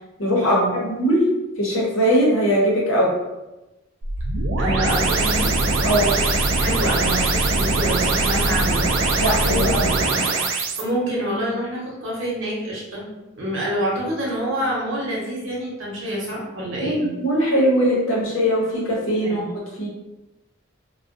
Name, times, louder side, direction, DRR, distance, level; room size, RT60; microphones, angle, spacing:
voice 1, 0.2-1.2 1.6-3.1 5.8-6.1 9.2-9.8 16.8-19.5 19.8-19.9, equal, 80° left, -4 dB, 0.8 m, -20 dB
sound 1, 4.0-10.8, right 3 dB, 85° right, 0.4 m, -21 dB
voice 2, 4.6-5.5 6.6-8.9 9.4-10.3 10.8-13.0 13.4-17.0 19.2-19.4, right 1 dB, 70° right, -5 dB, 0.9 m, -27 dB
2.3 x 2.2 x 2.5 m, 1.0 s
head